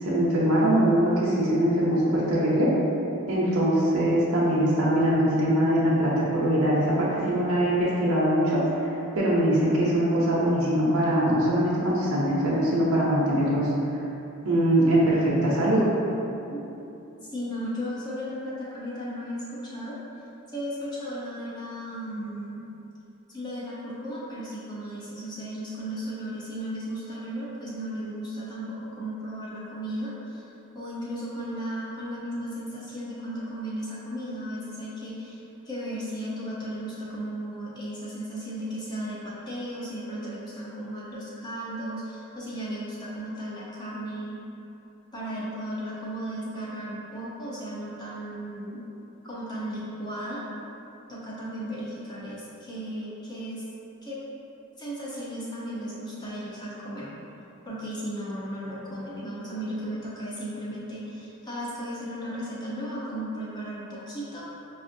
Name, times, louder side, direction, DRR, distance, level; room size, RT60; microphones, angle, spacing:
voice 1, 0.0-2.7 3.3-8.6 9.1-13.7 14.4-15.8, right 1 dB, 80° right, -7 dB, 0.7 m, -22 dB
voice 2, 17.2-22.7 23.3-44.4 45.1-48.8 49.2-50.4 51.1-53.6 54.0-54.2 54.8-57.1 57.6-64.4, equal, 20° left, -8 dB, 0.6 m, -35 dB
5.2 x 2.4 x 2.6 m, 2.9 s
head